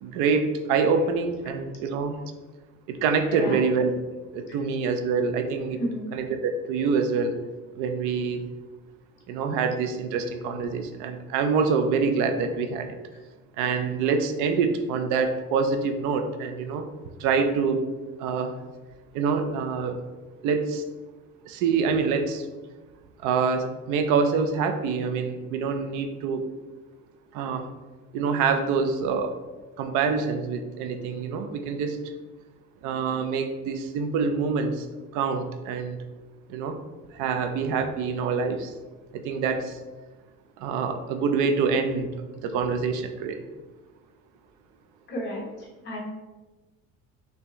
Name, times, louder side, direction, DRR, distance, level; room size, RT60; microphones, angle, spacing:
voice 1, 0.0-2.2 2.9-3.9 4.3-5.8 6.1-7.4 7.8-8.4 9.3-12.9 13.6-16.9 17.2-17.9 18.2-18.5 19.1-20.0 20.4-20.8 21.4-22.5 23.2-26.4 27.3-27.7 28.1-29.4 29.8-32.0 32.8-34.9 35.1-36.0 36.5-36.8 37.1-38.7 39.1-39.8 40.6-42.1 42.4-43.4, right 5 dB, 70° right, 7 dB, 0.5 m, -26 dB
voice 2, 3.2-3.6 4.5-4.6 5.7-6.1 45.1-46.0, equal, 35° left, -2 dB, 1.0 m, -33 dB
5.4 x 2.8 x 3.0 m, 1.2 s
cardioid pair, 175°, 31 cm